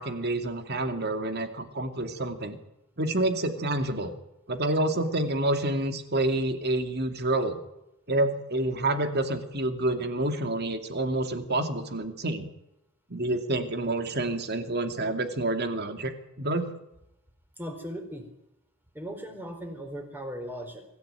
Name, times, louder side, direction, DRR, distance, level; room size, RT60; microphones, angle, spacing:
voice 1, 0.0-2.6 3.0-4.1 4.5-7.6 8.1-12.5 13.1-16.7, right 1 dB, 45° right, 8 dB, 2.6 m, -28 dB
voice 2, 17.6-18.3 18.9-20.9, equal, 10° right, 5 dB, 4.1 m, -38 dB
24.5 x 15.0 x 9.2 m, 0.88 s
head